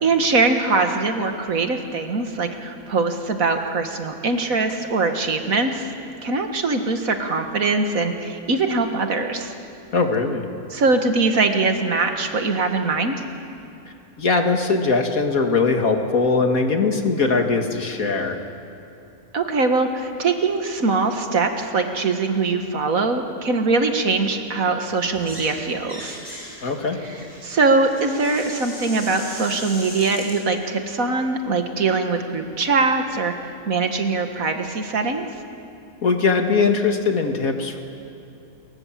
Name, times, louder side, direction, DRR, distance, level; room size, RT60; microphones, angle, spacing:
voice 1, 0.0-5.9 6.2-9.5 10.7-13.2 19.3-26.2 27.4-35.3, right 3 dB, 70° right, 5 dB, 2.1 m, -22 dB
voice 2, 9.9-10.5 14.2-18.4 26.6-27.0 36.0-37.8, left 4 dB, 75° left, 4 dB, 2.6 m, -20 dB
sound 1, 25.1-25.5 25.8-30.4, equal, 15° right, 6.3 m, -38 dB
27.5 x 23.0 x 7.5 m, 2.8 s
omnidirectional pair, 1.5 m